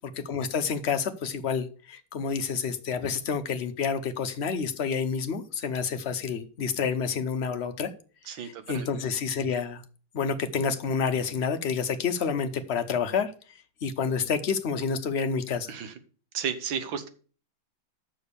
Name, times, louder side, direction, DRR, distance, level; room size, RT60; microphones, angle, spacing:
voice 1, 0.2-7.9 8.4-9.8 10.1-13.3 13.8-15.7, left 6 dB, 70° left, 7 dB, 0.6 m, -29 dB
voice 2, 8.3-8.9 15.7-16.0 16.3-17.1, right 7 dB, 85° right, 10 dB, 1.8 m, -33 dB
6.9 x 6.3 x 6.7 m, 0.39 s
omnidirectional pair, 2.1 m